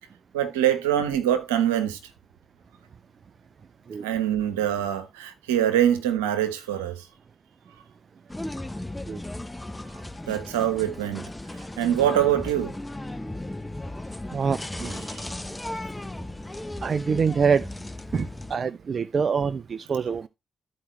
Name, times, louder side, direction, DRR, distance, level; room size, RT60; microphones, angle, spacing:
voice 1, 0.3-2.0 4.0-7.0 10.3-11.2 11.8-12.7, right 10 dB, 90° right, 1.1 m, -24 dB
sound 1, 8.3-18.6, left 1 dB, 15° left, 0.9 m, -36 dB
voice 2, 14.3-15.0 16.8-17.7 18.1-20.3, right 6 dB, 50° right, 0.4 m, -25 dB
13.5 x 4.8 x 3.1 m
hypercardioid pair, 45°, 0 cm